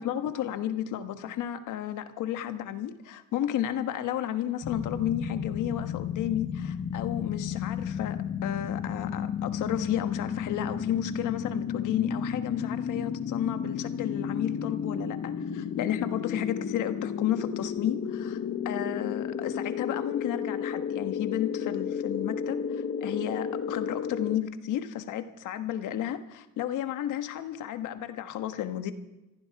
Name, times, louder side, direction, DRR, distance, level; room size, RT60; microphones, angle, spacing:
voice 1, 0.0-18.4 18.6-28.9, left 11 dB, 85° left, 9 dB, 1.4 m, -32 dB
sound 1, 4.6-24.4, left 7 dB, 45° left, 1.0 m, -32 dB
19.5 x 15.0 x 4.7 m, 1.0 s
cardioid pair, 90°, 30 cm